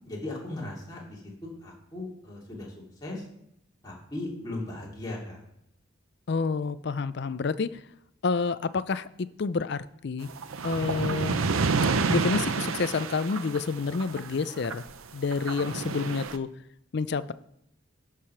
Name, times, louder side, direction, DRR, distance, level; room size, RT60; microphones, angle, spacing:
voice 1, 0.0-2.7 3.0-3.2 3.8-5.4, left 2 dB, 20° left, -4 dB, 2.8 m, -37 dB
voice 2, 6.3-7.8 8.2-9.1 9.4-10.3 10.6-11.4 12.1-14.8 15.1-16.5 16.9-17.3, left 4 dB, 55° left, 14 dB, 0.4 m, -28 dB
sound 1, 10.2-14.9 15.2-16.4, right 4 dB, 90° right, 0.6 m, -29 dB
13.0 x 4.9 x 5.7 m, 0.77 s
head